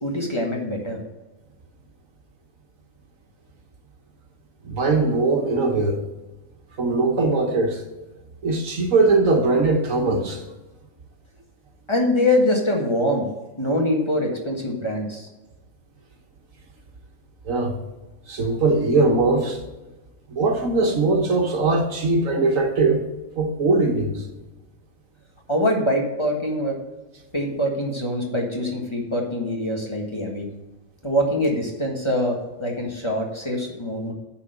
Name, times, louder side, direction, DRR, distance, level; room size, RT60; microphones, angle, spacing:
voice 1, 0.0-1.0 11.9-13.3 13.6-15.3 25.5-26.8 27.3-30.4 31.0-34.1, left 1 dB, 20° left, 1.6 m, -24 dB
voice 2, 4.6-6.0 6.8-7.8 8.4-10.4 17.4-17.8 18.3-19.6 20.3-23.0 23.4-24.2, right 3 dB, 75° right, 1.7 m, -20 dB
9.8 x 4.4 x 6.5 m
omnidirectional pair, 1.4 m